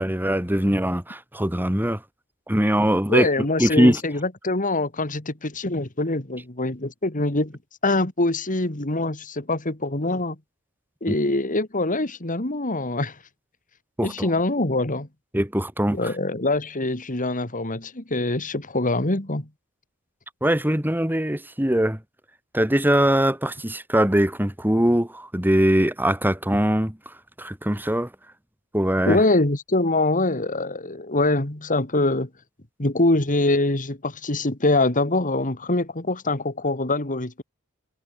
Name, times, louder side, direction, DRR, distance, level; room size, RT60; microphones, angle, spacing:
voice 1, 0.0-2.0 2.5-3.3 3.6-4.0 11.1-11.2 14.0-14.3 15.3-16.1 20.4-22.0 22.5-28.1 28.7-29.2, right 1 dB, 10° right, 2.4 m, -22 dB
voice 2, 3.1-10.4 11.0-13.2 14.0-15.1 15.9-19.5 29.1-32.3 32.8-37.4, left 2 dB, 35° left, 2.5 m, -24 dB
head